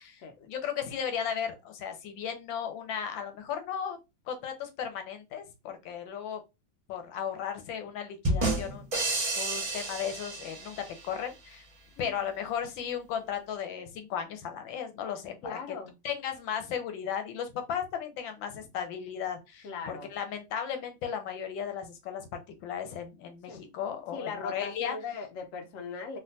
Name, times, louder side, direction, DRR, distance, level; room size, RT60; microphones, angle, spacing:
voice 1, 0.0-4.0 4.3-6.4 6.9-11.6 12.0-15.6 16.0-25.0, left 8 dB, 85° left, 1.4 m, -36 dB
Sting rimshot drum roll (smooth), 8.2-11.1, right 2 dB, 40° right, 0.5 m, -30 dB
voice 2, 12.0-12.3 15.4-15.9 19.6-20.1 23.5-23.6 24.1-26.2, left 4 dB, 60° left, 0.9 m, -39 dB
3.4 x 2.4 x 2.5 m
omnidirectional pair, 2.0 m